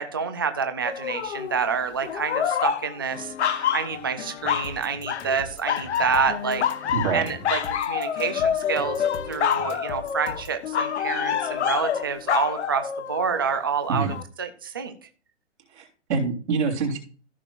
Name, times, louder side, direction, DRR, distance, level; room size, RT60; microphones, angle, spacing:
voice 1, 0.0-7.6 7.9-14.1 14.4-14.9, right 6 dB, 20° right, 8 dB, 0.3 m, -28 dB
sound 1, 0.8-1.6 2.0-4.7 5.0-5.4 5.7-13.6 14.1-14.2, left 8 dB, 65° left, 0.9 m, -27 dB
Acoustic guitar / Strum, 3.1-10.3, left 3 dB, 15° left, 1.2 m, -50 dB
sound 2, 4.6-10.6, left 2 dB, 35° left, 1.1 m, -42 dB
voice 2, 6.9-7.2 13.9-14.1 15.7-17.0, right 5 dB, 65° right, 0 dB, 3.4 m, -25 dB
14.5 x 6.5 x 2.4 m, 0.39 s
hypercardioid pair, 155°, 36 cm